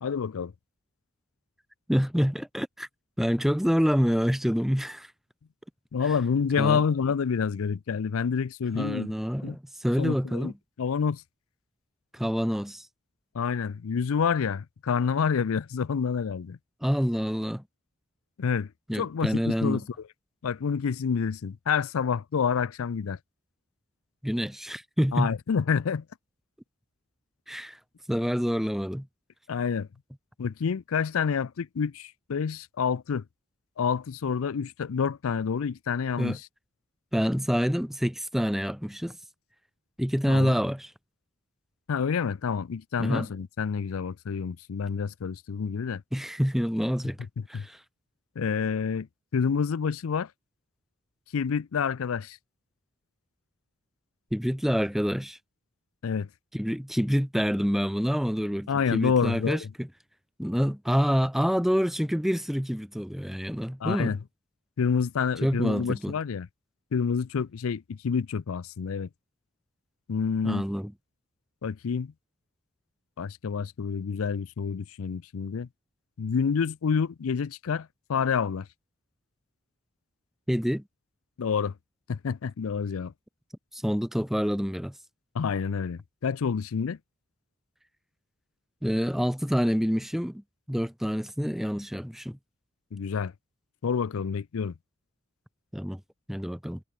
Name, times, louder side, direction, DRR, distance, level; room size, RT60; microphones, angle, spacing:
voice 1, 0.0-0.5 5.9-9.1 9.4-9.6 10.0-10.5 10.8-11.2 13.3-16.6 18.4-18.7 18.9-19.8 20.4-23.2 25.1-26.0 29.5-29.9 30.4-33.2 33.8-36.5 40.3-40.5 41.9-46.0 47.5-47.7 48.4-49.1 49.3-50.3 51.3-52.4 56.0-56.3 58.7-59.7 63.8-64.2 64.8-66.5 66.9-69.1 70.1-70.7 71.6-72.1 73.2-75.7 76.2-78.7 81.4-81.7 82.1-83.1 85.3-87.0 92.9-93.3 93.8-94.7, left 6 dB, 85° left, 0.5 m, -28 dB
voice 2, 1.9-2.9 3.2-5.1 6.0-6.1 6.6-6.8 8.7-10.5 12.1-12.9 16.8-17.6 18.9-19.8 24.2-25.3 27.5-27.8 28.1-29.1 36.2-36.4 37.1-39.2 40.0-40.9 43.0-43.3 46.1-47.8 54.3-55.4 56.5-59.9 60.4-64.2 65.4-66.1 70.4-70.9 80.5-80.8 83.7-84.9 88.8-90.4 90.7-92.4 95.7-96.0 96.3-96.8, equal, ahead, 0.8 m, -27 dB
head